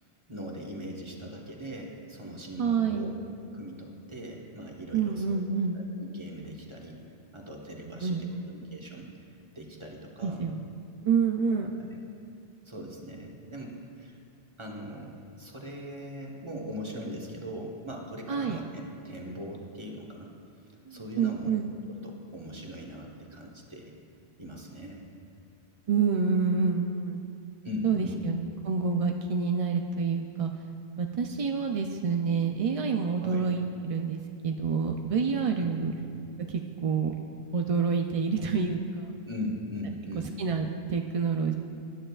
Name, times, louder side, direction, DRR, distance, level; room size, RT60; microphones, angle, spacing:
voice 1, 0.3-3.1 3.5-5.4 5.7-7.0 7.3-9.1 9.5-10.4 11.5-12.0 12.6-14.2 14.6-20.3 20.9-21.5 21.9-23.9 24.4-25.1 27.6-28.2 33.1-33.5 35.6-35.9 39.3-40.3, equal, 25° right, -1 dB, 1.3 m, -40 dB
voice 2, 2.6-3.1 4.9-5.8 8.0-8.5 10.2-10.6 11.0-11.7 18.3-18.6 20.9-21.7 25.9-27.3 27.8-30.5 31.0-35.9 36.5-37.1 37.5-39.1 40.4-41.5, right 5 dB, 55° right, 4 dB, 0.4 m, -28 dB
19.0 x 10.0 x 2.4 m, 2.5 s
omnidirectional pair, 1.2 m